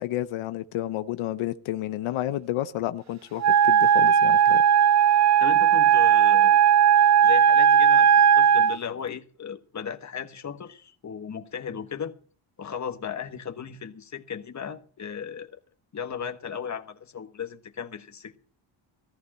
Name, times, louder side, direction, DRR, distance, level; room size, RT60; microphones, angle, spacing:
voice 1, 0.0-4.6, left 14 dB, 85° left, 0.8 m, -31 dB
Wind instrument woodwind instrument, 3.4-8.8, right 8 dB, 35° right, 0.5 m, -17 dB
voice 2, 5.4-6.6 7.2-8.1 8.4-12.1 12.6-15.5 15.9-18.4, left 7 dB, 35° left, 1.4 m, -36 dB
14.5 x 14.0 x 4.3 m
cardioid pair, 105°, 48 cm